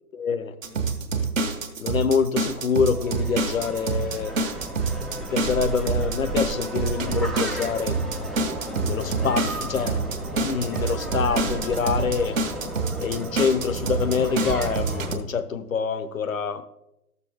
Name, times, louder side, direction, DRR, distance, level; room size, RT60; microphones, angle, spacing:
voice 1, 0.1-0.5 1.8-4.4 5.2-8.0 8.8-12.4 13.0-16.6, left 6 dB, 60° left, 12 dB, 0.9 m, -26 dB
sound 1, 0.6-15.2, right 4 dB, 60° right, 1.3 m, -27 dB
sound 2, 2.9-15.1, right 1 dB, ahead, 0.3 m, -33 dB
13.0 x 6.9 x 3.5 m, 0.89 s
figure-of-eight pair, 140°, 45 cm